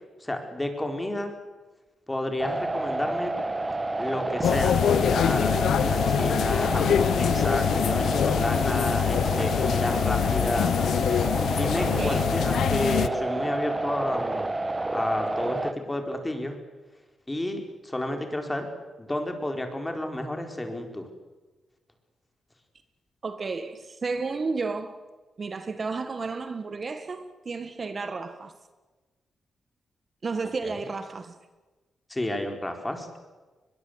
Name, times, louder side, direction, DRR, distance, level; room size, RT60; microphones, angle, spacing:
voice 1, 0.2-1.3 2.1-3.3 4.0-10.7 11.5-14.5 14.9-16.5 17.3-18.7 19.0-21.1 30.6-30.8 32.1-33.1, left 1 dB, 15° left, 4.8 m, -31 dB
sound 1, 2.4-15.7, right 2 dB, 20° right, 1.5 m, -30 dB
sound 2, 4.4-13.1, left 9 dB, 85° left, 0.8 m, -24 dB
voice 2, 11.8-12.2 23.2-25.0 25.4-28.5 30.2-31.3, right 4 dB, 45° right, 1.8 m, -32 dB
22.0 x 22.0 x 8.2 m
cardioid pair, 75°, 0 cm